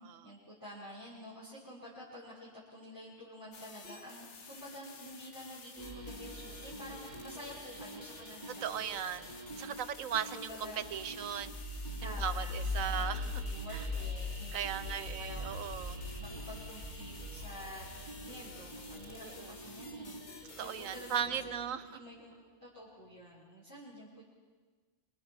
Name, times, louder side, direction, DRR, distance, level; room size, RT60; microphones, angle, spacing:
voice 1, 0.0-9.8 10.3-10.8 12.0-13.2 13.4-15.7 16.2-17.9 18.2-22.4 22.6-24.2, equal, 15° left, -9 dB, 5.8 m, -49 dB
sound 1, 3.5-21.2, left 5 dB, 60° left, 1.6 m, -52 dB
sound 2, 5.8-21.7, left 1 dB, 35° right, 1.9 m, -42 dB
voice 2, 8.6-9.2 9.6-11.5 12.0-13.4 13.7-13.8 14.5-16.0 19.2-19.5 20.6-22.0, right 9 dB, 85° right, 14 dB, 1.3 m, -37 dB
28.5 x 26.5 x 4.9 m, 1.4 s
omnidirectional pair, 1.4 m